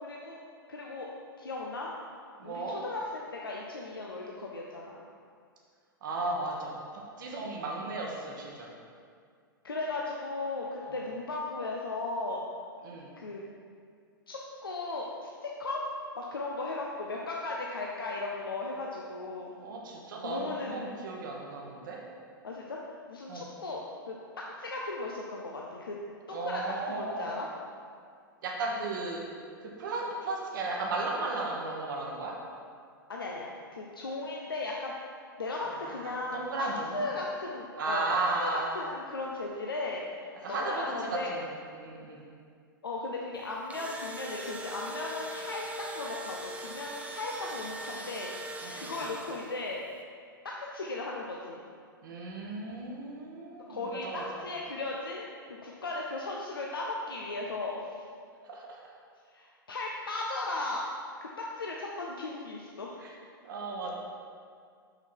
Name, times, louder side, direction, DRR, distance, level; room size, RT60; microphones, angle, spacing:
voice 1, 0.0-0.4 0.7-1.1 1.4-1.9 2.4-5.0 9.6-12.4 13.2-13.4 14.3-15.8 16.2-19.5 20.2-21.0 22.4-22.8 23.1-23.8 24.1-24.2 24.6-26.0 26.3-26.6 26.9-27.5 33.1-34.9 35.4-41.3 42.8-48.3 48.7-49.8 50.4-51.6 53.7-58.0 59.3-60.8 61.2-63.0, left 2 dB, 80° left, -2 dB, 0.7 m, -36 dB
voice 2, 2.4-2.8 6.0-8.7 10.9-11.0 12.8-13.1 19.6-22.0 23.3-23.5 26.3-27.4 28.4-29.2 29.6-32.4 35.6-37.0 37.8-38.8 40.4-41.5 41.8-42.2 48.6-49.1 52.0-54.4 58.4-58.8 63.0-63.1 63.4-63.9, right 2 dB, 60° right, -2 dB, 1.1 m, -35 dB
Engine / Drill, 43.4-49.7, right 1 dB, 10° right, 0.7 m, -41 dB
6.6 x 6.1 x 4.4 m, 2.2 s
figure-of-eight pair, 100°, 12 cm